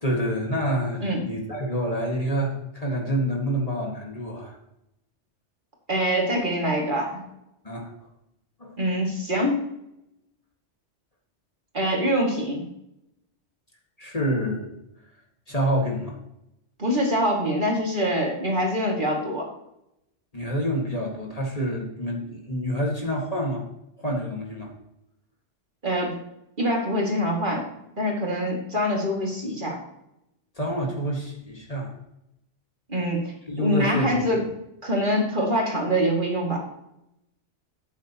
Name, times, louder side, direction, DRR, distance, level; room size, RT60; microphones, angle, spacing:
voice 1, 0.0-4.6 7.6-7.9 8.6-8.7 14.0-14.8 15.5-16.2 20.3-23.7 24.0-24.7 30.6-31.9 33.5-34.4, equal, 30° left, -2 dB, 1.9 m, -27 dB
voice 2, 5.9-7.2 8.8-9.6 11.7-12.7 16.8-19.5 25.8-26.2 26.6-27.7 28.0-29.8 32.9-34.4 34.8-36.6, equal, 45° right, -1 dB, 2.4 m, -24 dB
12.5 x 8.9 x 3.0 m, 0.83 s
omnidirectional pair, 1.2 m